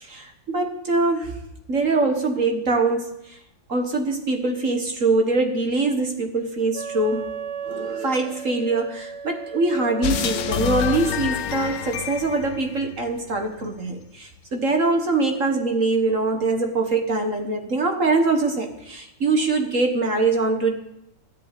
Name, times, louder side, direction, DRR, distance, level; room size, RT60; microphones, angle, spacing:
voice 1, 0.0-1.4 1.7-3.4 3.7-7.3 7.7-20.7, right 3 dB, 45° right, 4 dB, 1.8 m, -23 dB
Wind instrument woodwind instrument, 6.7-11.2, right 7 dB, 60° right, 1.6 m, -34 dB
sound 1, 10.0-13.4, left 11 dB, 70° left, 1.3 m, -28 dB
13.5 x 10.5 x 8.3 m, 0.84 s
omnidirectional pair, 2.1 m